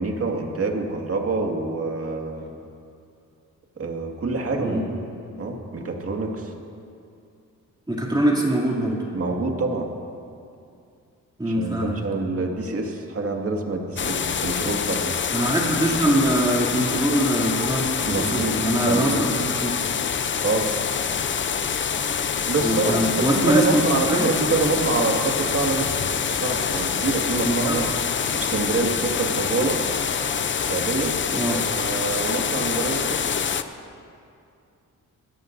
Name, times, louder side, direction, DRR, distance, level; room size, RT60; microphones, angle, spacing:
voice 1, 0.0-2.5 3.8-5.0 5.4-6.5 9.1-9.9 11.5-15.1 18.1-18.6 18.9-19.2 20.4-20.7 22.5-25.9 26.3-27.9 28.3-29.8 30.6-33.2, right 3 dB, 45° right, 2 dB, 2.0 m, -26 dB
voice 2, 7.9-9.0 11.4-11.9 15.3-19.9 22.6-23.8 24.1-24.3 27.4-27.8 31.3-31.6, right 1 dB, 15° right, -4 dB, 2.6 m, -23 dB
sound 1, 14.0-33.6, left 7 dB, 35° left, 0.6 m, -26 dB
23.0 x 14.5 x 2.7 m, 2.5 s
cardioid pair, 80°, 32 cm